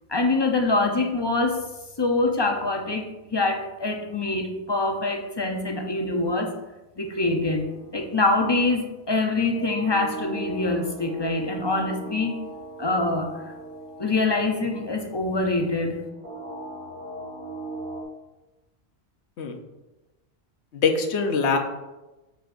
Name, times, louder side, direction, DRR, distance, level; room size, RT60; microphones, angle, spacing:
voice 1, 0.1-1.6 2.0-6.5 7.0-7.7 7.9-12.3 12.8-13.4 14.0-16.0, left 2 dB, 30° left, 3 dB, 0.6 m, -24 dB
sound 1, 7.2-18.0, right 2 dB, 45° right, 1.1 m, -39 dB
voice 2, 20.7-21.6, left 5 dB, 75° left, 5 dB, 1.0 m, -23 dB
6.8 x 6.3 x 2.6 m, 1.0 s
omnidirectional pair, 1.2 m